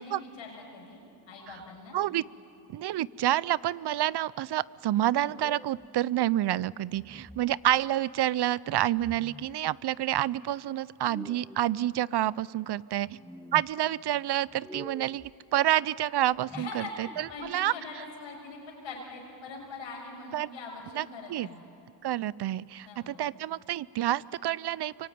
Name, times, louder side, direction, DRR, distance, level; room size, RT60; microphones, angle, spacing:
voice 1, 0.0-2.0 16.5-21.7 22.8-23.2, left 3 dB, 90° left, 0 dB, 6.1 m, -43 dB
voice 2, 2.7-13.1 13.5-17.7 20.3-20.5 21.0-21.1 21.3-21.5 22.0-25.1, right 13 dB, 60° right, 21 dB, 0.6 m, -28 dB
sound 1, 5.3-5.9 6.9-7.5 8.9-9.6 11.0-11.7 12.9-13.7 14.5-15.3 16.3-17.5, equal, ahead, 1.0 m, -47 dB
25.0 x 24.0 x 9.3 m, 2.8 s
cardioid pair, 70°, 44 cm